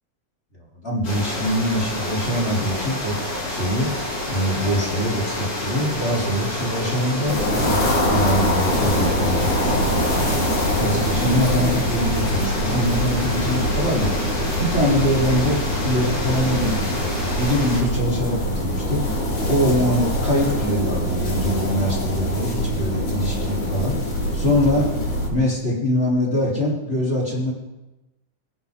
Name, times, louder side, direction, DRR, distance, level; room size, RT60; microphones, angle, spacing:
voice 1, 0.8-3.1 3.5-3.9 4.3-7.8 8.0-10.4 10.8-19.2 19.5-24.0 24.3-24.9 25.3-27.5, equal, 20° left, -5 dB, 3.4 m, -23 dB
sound 1, 1.0-17.8, left 1 dB, 55° left, 6.4 m, -29 dB
sound 2, 7.3-25.3, equal, 90° left, 7.0 m, -24 dB
24.0 x 10.5 x 3.7 m, 1.0 s
omnidirectional pair, 3.5 m